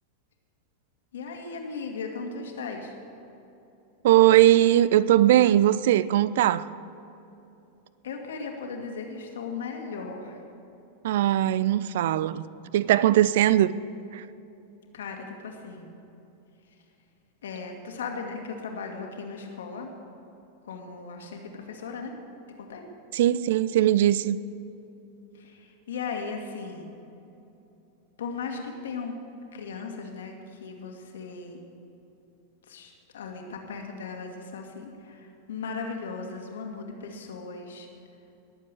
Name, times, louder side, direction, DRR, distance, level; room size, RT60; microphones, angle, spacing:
voice 1, 1.1-2.9 8.0-10.4 14.9-15.9 17.4-19.9 20.7-22.1 22.6-22.9 25.3-26.9 28.2-29.2 29.5-31.6 32.7-37.9, left 4 dB, 65° left, 1.9 m, -37 dB
voice 2, 4.0-6.7 11.0-12.5 12.7-13.7 14.1-14.2 23.1-24.4, right 13 dB, 55° right, 0.4 m, -20 dB
20.5 x 7.5 x 6.6 m
figure-of-eight pair, 90°, 0 cm